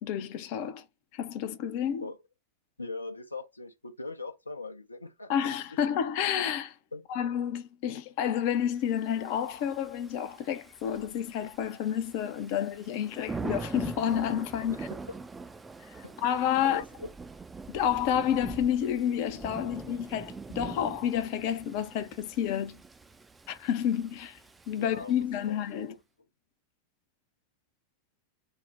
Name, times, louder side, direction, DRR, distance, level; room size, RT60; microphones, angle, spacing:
voice 1, 0.0-0.8 1.1-2.1 5.3-6.7 7.1-14.9 15.9-16.8 17.7-22.8 23.5-24.4 24.7-25.9, left 9 dB, 45° left, 0.5 m, -30 dB
voice 2, 2.8-5.3 6.9-7.1 14.9-15.1 16.0-16.1 16.6-17.1 24.8-26.0, left 3 dB, 80° left, 0.7 m, -41 dB
Thunder / Rain, 8.9-25.5, right 4 dB, 10° right, 0.4 m, -43 dB
3.3 x 2.1 x 4.1 m
figure-of-eight pair, 90°, 0 cm